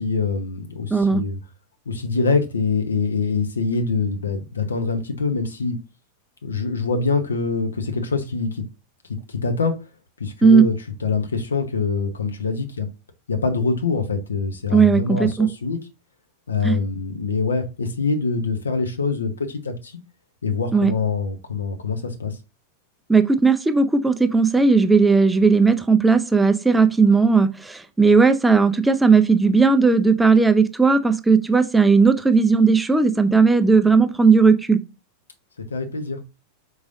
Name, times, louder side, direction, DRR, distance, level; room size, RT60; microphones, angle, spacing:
voice 1, 0.0-1.4 1.9-5.8 6.4-8.6 9.3-9.7 10.2-10.7 11.0-12.9 13.3-15.8 16.5-20.0 20.4-22.4 35.7-36.2, left 4 dB, 70° left, 0.7 m, -24 dB
voice 2, 0.9-1.2 10.4-10.6 14.7-15.5 16.6-16.8 20.7-20.9 23.1-34.8, right 4 dB, 5° right, 0.4 m, -16 dB
4.8 x 3.9 x 2.6 m
figure-of-eight pair, 90°, 0 cm